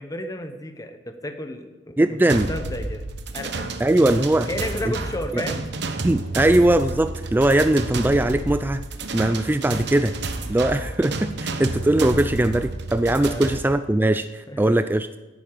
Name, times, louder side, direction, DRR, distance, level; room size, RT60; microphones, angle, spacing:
voice 1, 0.0-3.1 3.3-3.7 4.5-5.7 6.3-6.4 13.2-13.5 14.5-14.6, left 1 dB, 20° left, 7 dB, 0.9 m, -32 dB
voice 2, 2.0-2.5 3.8-4.5 5.3-5.4 6.0-8.8 9.1-15.1, right 1 dB, 10° right, 10 dB, 0.3 m, -20 dB
sound 1, 2.3-13.6, right 2 dB, 65° right, 1.1 m, -30 dB
11.0 x 9.1 x 9.0 m, 1.2 s
head